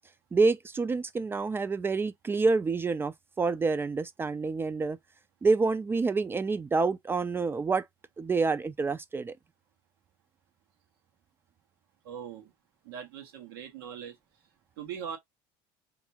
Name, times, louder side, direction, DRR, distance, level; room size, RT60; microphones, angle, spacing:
voice 1, 0.3-5.0 5.4-7.9 8.2-9.4, right 4 dB, 20° right, 0.3 m, -27 dB
voice 2, 12.0-12.5 12.8-14.1 14.8-15.2, right 8 dB, 85° right, 1.0 m, -40 dB
3.4 x 2.6 x 2.8 m
supercardioid pair, 95°, 12 cm